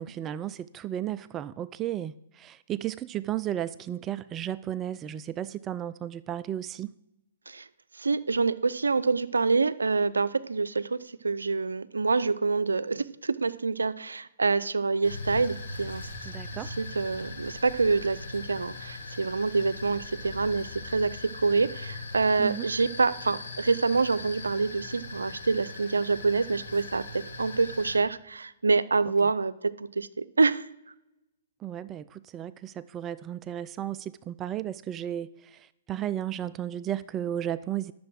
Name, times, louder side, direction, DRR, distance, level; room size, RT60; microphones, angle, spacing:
voice 1, 0.0-6.9 16.3-16.7 22.4-22.7 31.6-37.9, right 11 dB, 25° right, 0.3 m, -34 dB
voice 2, 8.0-11.0 11.2-16.1 16.8-30.7, right 4 dB, 90° right, 0.5 m, -26 dB
sound 1, 15.0-28.0, left 3 dB, 80° left, 2.5 m, -40 dB
12.0 x 6.8 x 6.2 m
hypercardioid pair, 125°, 0 cm